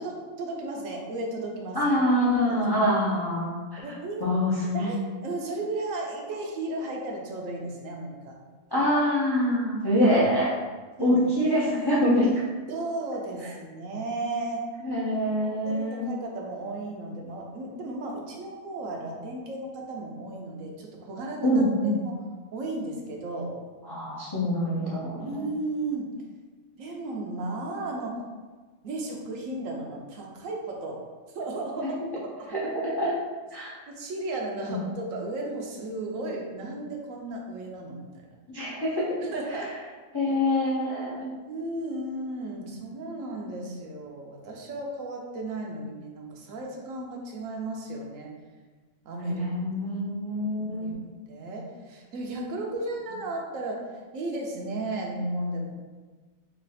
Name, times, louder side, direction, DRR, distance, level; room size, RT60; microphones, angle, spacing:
voice 1, 0.0-1.8 3.8-4.3 4.7-8.4 11.0-11.2 12.7-14.6 15.3-21.6 22.0-22.1 22.5-23.5 25.2-26.1 26.8-28.2 28.8-31.0 31.3-32.0 33.9-38.2 39.2-39.8 41.5-48.3 49.0-49.4 50.8-50.9 51.3-53.8 54.1-55.7, right 2 dB, 75° right, 0 dB, 1.0 m, -34 dB
voice 2, 1.7-3.9 4.2-4.9 8.7-10.5 11.0-12.4 14.8-16.1 21.4-21.9 23.9-25.4 31.8-31.9 32.5-32.6 33.0-33.1 33.5-33.7 34.7-34.8 38.5-39.1 39.5-39.6 40.1-41.3 49.3-51.0, equal, 40° left, -7 dB, 0.3 m, -25 dB
3.2 x 2.4 x 3.9 m, 1.4 s
omnidirectional pair, 1.4 m